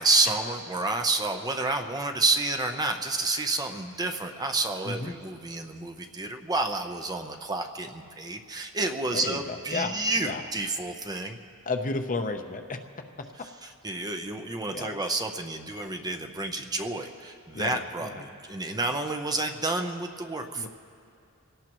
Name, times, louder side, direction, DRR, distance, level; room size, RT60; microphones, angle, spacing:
voice 1, 0.0-11.4 13.6-20.7, right 2 dB, 15° right, 5 dB, 0.7 m, -29 dB
voice 2, 4.8-5.2 9.1-10.4 11.6-12.8 14.7-15.0 17.5-18.2 20.6-20.7, left 3 dB, 35° left, 5 dB, 0.8 m, -33 dB
27.0 x 17.5 x 3.0 m, 2.5 s
head